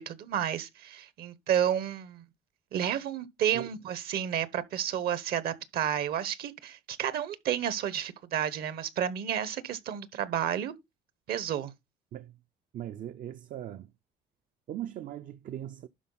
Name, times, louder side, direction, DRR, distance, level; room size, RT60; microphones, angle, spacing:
voice 1, 0.0-2.2 2.7-10.7 11.3-11.7, right 9 dB, 65° right, 1.0 m, -31 dB
voice 2, 12.7-13.9 14.7-15.9, right 11 dB, 50° right, 0.5 m, -39 dB
11.5 x 4.1 x 3.9 m
cardioid pair, 110°, 17 cm